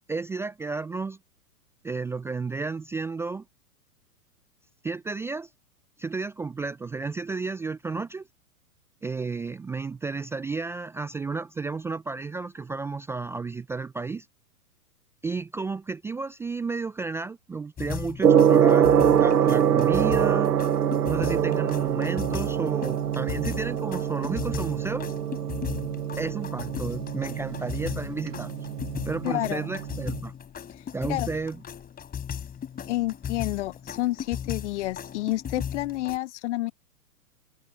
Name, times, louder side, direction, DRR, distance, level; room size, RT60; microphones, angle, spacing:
voice 1, 0.1-1.2 1.8-3.4 4.8-5.5 6.0-8.3 9.0-14.3 15.2-18.9 19.2-20.5 21.1-25.1 26.2-28.5 29.1-30.3 30.9-31.6, right 4 dB, 5° right, 0.5 m, -32 dB
sound 1, 17.8-36.2, left 8 dB, 20° left, 4.3 m, -37 dB
Gong, 18.2-30.2, right 9 dB, 80° right, 1.2 m, -24 dB
voice 2, 29.2-29.7 31.1-31.3 32.9-36.7, left 17 dB, 50° left, 0.8 m, -29 dB
hypercardioid pair, 115°, 47 cm